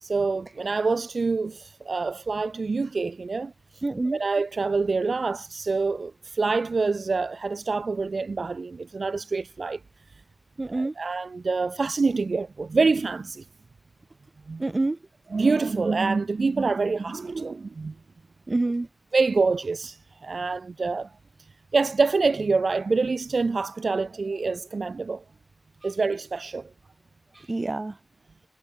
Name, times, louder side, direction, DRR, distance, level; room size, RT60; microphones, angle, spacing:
voice 1, 0.0-3.5 4.0-9.8 10.7-13.5 14.5-14.6 15.3-17.9 19.1-21.1 21.7-25.2 25.8-26.7, right 4 dB, 80° right, 0.6 m, -26 dB
voice 2, 3.8-4.2 10.6-10.9 14.6-15.0 18.5-18.9 27.5-28.0, right 2 dB, 45° right, 0.7 m, -26 dB
wide cardioid pair, 75°, 0 cm